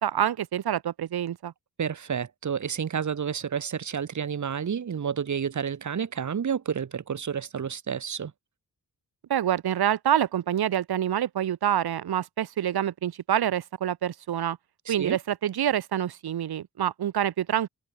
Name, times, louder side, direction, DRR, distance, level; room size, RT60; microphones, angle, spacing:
voice 1, 0.0-1.5 9.3-14.6 14.9-17.7, right 10 dB, 85° right, 1.1 m, -26 dB
voice 2, 1.8-8.3 14.9-15.2, right 7 dB, 50° right, 1.5 m, -30 dB
wide cardioid pair, 145°, 37 cm